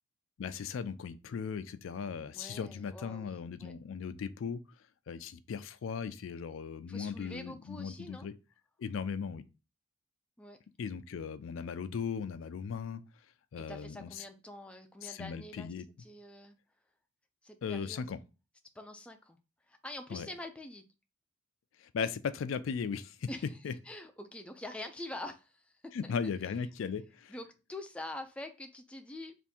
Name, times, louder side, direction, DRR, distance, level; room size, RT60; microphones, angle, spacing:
voice 1, 0.4-4.6 5.1-8.3 8.8-9.4 10.8-13.0 13.5-14.2 15.0-15.9 17.6-18.2 20.1-20.3 21.8-23.3 23.6-23.7 25.9-27.3, left 6 dB, 75° left, 0.4 m, -37 dB
voice 2, 2.3-3.7 6.9-8.3 10.4-10.6 13.6-15.7 16.0-16.6 17.4-18.0 18.7-19.4 19.7-20.8 23.3-23.6 23.9-26.1 27.3-29.4, left 1 dB, 5° left, 0.4 m, -45 dB
3.5 x 2.5 x 4.1 m
head